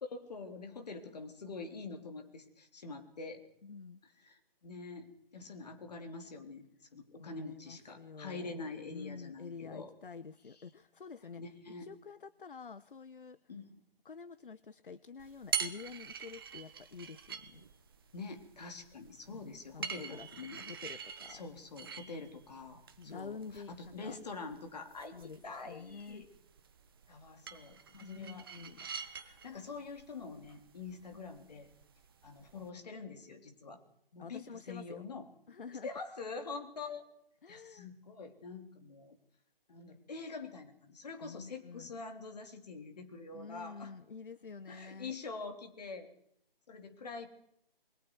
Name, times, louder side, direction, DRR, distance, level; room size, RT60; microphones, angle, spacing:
voice 1, 0.0-3.4 4.0-9.9 11.4-11.9 13.5-13.8 18.1-20.6 21.3-26.3 27.1-28.7 29.2-31.7 32.2-33.8 34.1-35.3 35.8-37.0 37.5-39.2 39.7-43.9 44.7-46.1 46.7-47.3, left 4 dB, 45° left, 6 dB, 3.2 m, -45 dB
voice 2, 3.6-4.0 7.2-11.4 11.8-13.4 14.0-17.7 19.3-21.4 23.0-24.2 25.1-26.3 27.9-28.9 31.1-31.3 34.2-35.0 35.5-35.9 37.4-37.9 41.2-42.0 43.3-45.2, left 5 dB, 65° left, 16 dB, 0.9 m, -48 dB
sound 1, 15.2-32.7, right 7 dB, 25° right, 1.0 m, -45 dB
27.5 x 21.5 x 4.6 m, 0.74 s
figure-of-eight pair, 155°, 29 cm